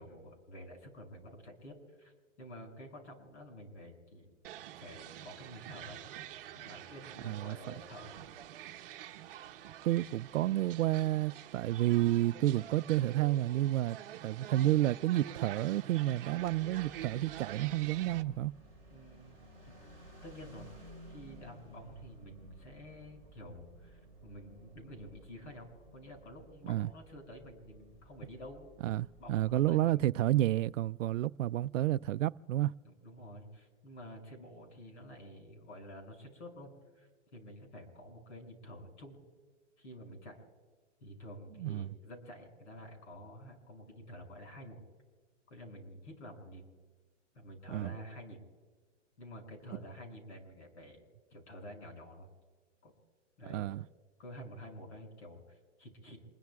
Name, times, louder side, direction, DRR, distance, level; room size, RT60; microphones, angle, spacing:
voice 1, 0.0-6.0 6.5-8.2 18.9-19.7 20.2-28.7 29.2-30.1 32.8-39.2 39.8-40.4 41.0-44.8 45.5-46.7 47.3-48.4 49.2-51.0 51.3-52.3 52.8-52.9 53.4-53.7 54.2-56.2, equal, 65° left, 6.9 m, -50 dB
sound 1, 4.4-18.2, right 12 dB, 45° right, 1.0 m, -47 dB
voice 2, 7.2-7.6 9.8-18.5 26.7-26.9 28.8-32.7 41.6-41.9 47.7-47.9 53.5-53.8, right 14 dB, 80° right, 0.5 m, -30 dB
sound 2, 16.4-29.7, right 2 dB, 15° left, 3.7 m, -56 dB
28.0 x 21.5 x 2.4 m
hypercardioid pair, 175°, 37 cm